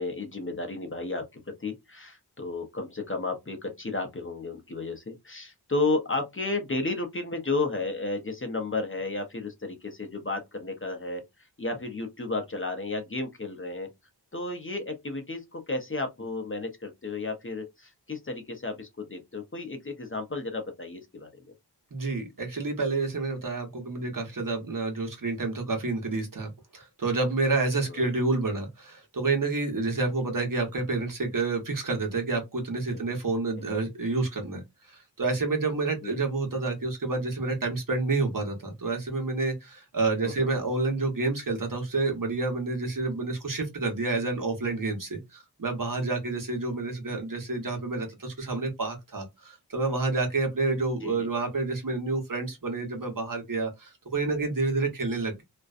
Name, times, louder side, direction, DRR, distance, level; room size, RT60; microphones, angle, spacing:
voice 1, 0.0-11.2 11.6-13.9 14.3-21.3 27.9-28.0 32.9-33.0 36.0-36.2 40.2-40.5 51.0-51.3, left 3 dB, 30° left, 0.6 m, -33 dB
voice 2, 21.9-55.4, right 3 dB, 50° right, 1.0 m, -29 dB
2.5 x 2.1 x 2.4 m
wide cardioid pair, 70°, 41 cm